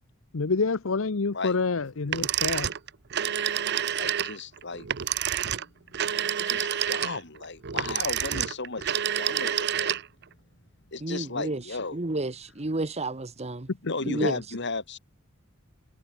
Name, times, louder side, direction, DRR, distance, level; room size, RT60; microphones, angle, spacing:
voice 1, 0.3-2.7 13.7-13.9, left 4 dB, 85° left, 0.8 m, -27 dB
sound 1, 2.1-10.2, right 10 dB, 60° right, 0.7 m, -28 dB
voice 2, 3.9-4.9 5.7-10.0 10.9-12.0 13.8-15.0, left 3 dB, 60° left, 3.2 m, -35 dB
voice 3, 11.0-11.6 11.9-13.7 14.0-14.4, right 2 dB, 35° right, 1.1 m, -31 dB
head